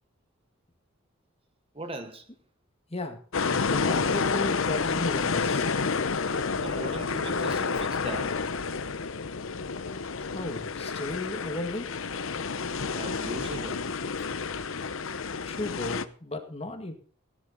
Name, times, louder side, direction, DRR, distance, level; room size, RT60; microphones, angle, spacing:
voice 1, 1.7-2.3 6.6-8.5 12.8-13.9 14.2-14.3, right 2 dB, 25° right, 1.1 m, -39 dB
sound 1, 3.3-16.0, left 5 dB, 65° left, 0.8 m, -29 dB
voice 2, 3.7-5.7 10.3-11.9 15.4-16.9, left 2 dB, 30° left, 1.8 m, -35 dB
15.5 x 11.0 x 4.0 m
head